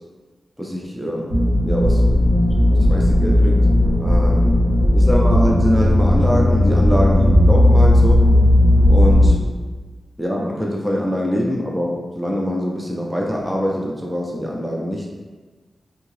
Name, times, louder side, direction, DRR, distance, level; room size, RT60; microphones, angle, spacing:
voice 1, 0.6-1.3 1.6-3.7 4.0-4.6 4.9-8.3 8.9-9.4 10.2-15.1, equal, 5° right, -2 dB, 0.4 m, -24 dB
sound 1, 1.3-9.3, left 1 dB, 85° right, 1.5 m, -15 dB
3.6 x 2.8 x 3.1 m, 1.3 s
wide cardioid pair, 140°, 0 cm